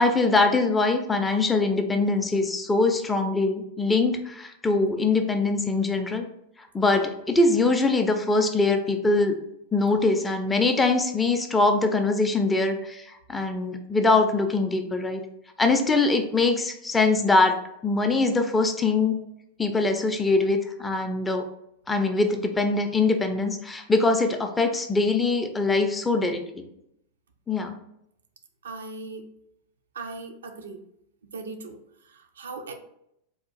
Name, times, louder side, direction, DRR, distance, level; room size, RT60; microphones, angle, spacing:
voice 1, 0.0-6.2 6.7-9.4 9.7-15.2 15.6-17.6 17.8-19.2 19.6-21.5 21.9-26.6 27.5-27.7, left 3 dB, 10° left, 5 dB, 0.4 m, -23 dB
voice 2, 28.6-29.3 29.9-30.8 31.3-31.8 32.1-32.7, right 3 dB, 65° right, 5 dB, 0.4 m, -38 dB
3.5 x 2.4 x 3.9 m, 0.78 s
figure-of-eight pair, 90°, 0 cm